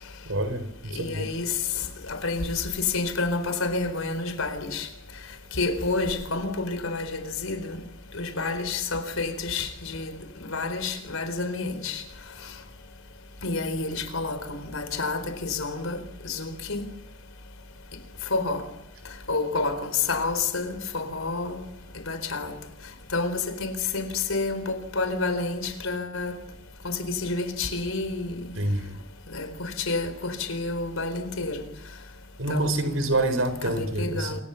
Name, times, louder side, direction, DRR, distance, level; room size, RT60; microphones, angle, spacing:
voice 1, 0.2-1.3 28.6-29.0 32.4-34.4, right 1 dB, 75° right, 4.2 m, -27 dB
voice 2, 0.9-1.5 2.1-4.9 5.5-7.8 8.1-10.1 10.5-12.0 13.4-16.9 18.3-18.6 19.3-21.6 22.1-22.5 23.1-26.3 26.8-28.3 29.3-31.6 32.5-33.1 33.6-34.4, left 3 dB, 85° left, 4.2 m, -29 dB
27.5 x 24.5 x 7.1 m
head